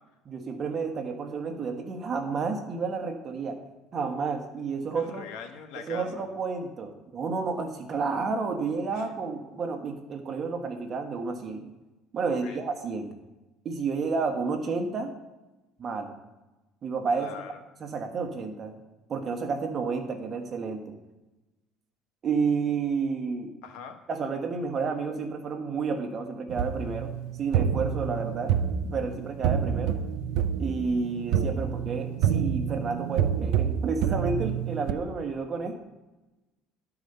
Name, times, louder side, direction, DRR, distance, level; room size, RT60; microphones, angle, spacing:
voice 1, 0.2-3.6 3.9-5.3 5.7-11.6 12.1-13.1 13.6-15.1 15.8-16.1 16.8-17.3 17.8-18.7 19.1-20.8 22.2-23.5 24.1-27.1 27.4-28.5 28.9-30.0 30.6-35.8, right 4 dB, 35° right, 5 dB, 1.4 m, -30 dB
voice 2, 4.9-6.1 8.9-9.1 12.3-12.6 17.1-17.6 23.6-24.0, left 6 dB, 75° left, 5 dB, 1.3 m, -42 dB
sound 1, 26.5-34.9, right 8 dB, 75° right, 0.5 m, -28 dB
11.5 x 4.9 x 6.8 m, 1.0 s
cardioid pair, 140°, 0 cm